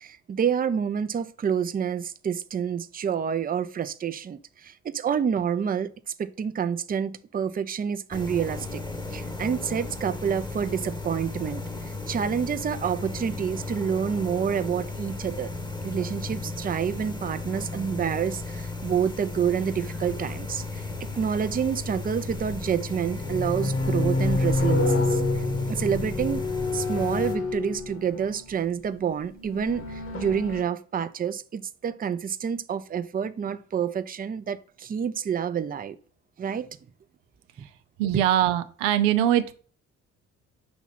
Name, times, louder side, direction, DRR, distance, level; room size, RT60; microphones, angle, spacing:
voice 1, 0.0-5.9 6.2-8.8 9.1-15.5 15.8-20.8 21.1-26.4 26.7-36.0 36.4-36.7 37.6-37.7, right 7 dB, 25° right, 0.5 m, -28 dB
sound 1, 8.1-27.4, left 3 dB, 10° left, 1.0 m, -35 dB
sound 2, 20.1-20.2 21.9-22.6 23.0-28.5 29.3-30.6, left 2 dB, 40° left, 1.3 m, -28 dB
voice 2, 38.0-39.5, right 11 dB, 90° right, 0.6 m, -22 dB
6.1 x 3.0 x 5.7 m
hypercardioid pair, 60°, 35 cm